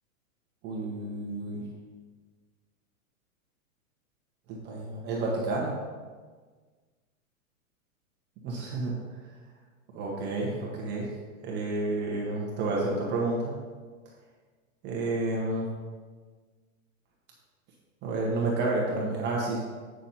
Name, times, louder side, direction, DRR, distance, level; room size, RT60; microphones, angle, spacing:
voice 1, 0.6-1.6 4.5-5.7 8.4-8.9 9.9-11.1 11.4-13.5 14.8-15.7 18.0-19.6, right 2 dB, 25° right, -3 dB, 1.3 m, -30 dB
9.0 x 6.4 x 4.3 m, 1.5 s
hypercardioid pair, 145°, 42 cm